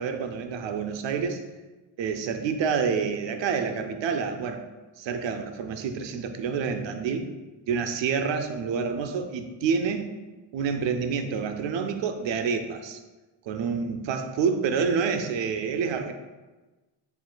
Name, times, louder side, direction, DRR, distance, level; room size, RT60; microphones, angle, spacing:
voice 1, 0.0-1.4 2.0-4.6 5.0-7.2 7.7-10.1 10.5-13.0 13.5-16.1, right 6 dB, 75° right, 6 dB, 0.5 m, -28 dB
6.8 x 2.5 x 2.2 m, 1.2 s
wide cardioid pair, 135°, 45 cm